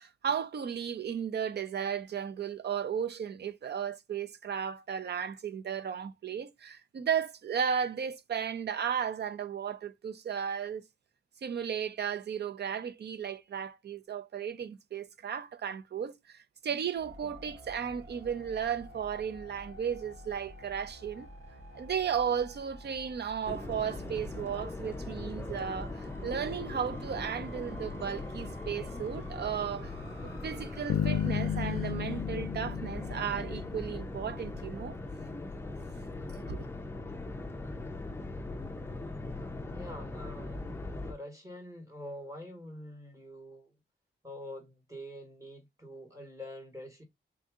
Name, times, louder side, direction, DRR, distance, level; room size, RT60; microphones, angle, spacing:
voice 1, 0.0-10.8 11.4-21.3 21.7-29.9 30.2-35.0 36.4-36.7, right 8 dB, 55° right, 0.5 m, -35 dB
sound 1, 17.0-31.9, equal, 85° right, 1.9 m, -50 dB
sound 2, 23.4-41.1, left 2 dB, 10° left, 0.5 m, -40 dB
sound 3, 30.9-34.3, left 8 dB, 80° left, 0.4 m, -33 dB
voice 2, 39.7-40.7 41.0-43.7 44.2-47.0, left 1 dB, 15° right, 1.5 m, -45 dB
3.7 x 2.7 x 3.6 m
wide cardioid pair, 180°, 21 cm